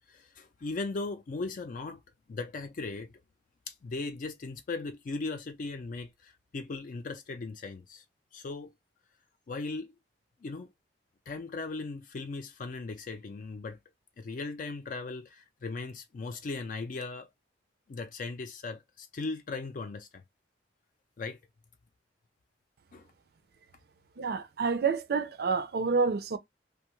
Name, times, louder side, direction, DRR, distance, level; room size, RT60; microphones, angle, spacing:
voice 1, 0.1-2.0 2.3-3.1 3.7-8.0 8.3-8.7 9.5-9.9 10.4-10.7 11.3-13.8 14.2-17.3 17.9-20.2 21.2-21.4 22.9-23.1, left 3 dB, 45° left, 0.4 m, -38 dB
voice 2, 24.2-26.4, right 5 dB, 60° right, 0.4 m, -28 dB
2.6 x 2.3 x 2.9 m
head